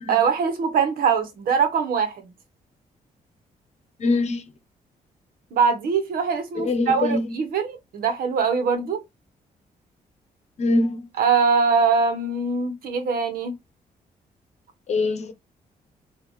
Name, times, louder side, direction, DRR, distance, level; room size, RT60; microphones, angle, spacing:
voice 1, 0.1-2.1 5.5-9.0 11.2-13.5, right 5 dB, 85° right, 1.3 m, -22 dB
voice 2, 4.0-4.4 6.6-7.3 10.6-11.1 14.9-15.3, left 2 dB, 50° left, 1.0 m, -23 dB
5.5 x 2.8 x 3.1 m
cardioid pair, 120°, 15 cm